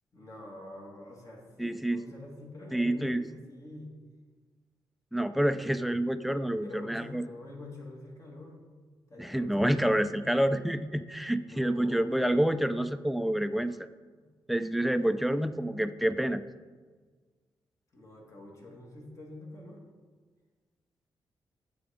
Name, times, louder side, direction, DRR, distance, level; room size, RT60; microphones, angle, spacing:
voice 1, 0.1-3.9 6.6-8.6 9.1-9.8 11.4-12.1 14.1-14.2 17.9-19.8, left 2 dB, 40° left, -1 dB, 2.2 m, -46 dB
voice 2, 1.6-2.0 2.7-3.2 5.1-7.2 9.2-13.9 14.5-16.4, right 1 dB, ahead, 11 dB, 0.4 m, -28 dB
8.6 x 7.0 x 5.1 m, 1.5 s
cardioid pair, 115°, 8 cm